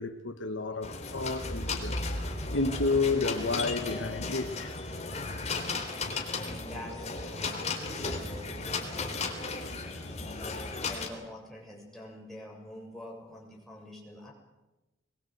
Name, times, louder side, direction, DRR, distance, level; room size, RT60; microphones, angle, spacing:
voice 1, 0.0-2.0 2.5-4.7, left 3 dB, 75° left, 1.3 m, -30 dB
sound 1, 0.8-11.1, left 3 dB, 35° left, 3.6 m, -35 dB
voice 2, 6.4-9.4 9.8-14.3, left 1 dB, ahead, 7.3 m, -46 dB
22.5 x 22.0 x 8.1 m
head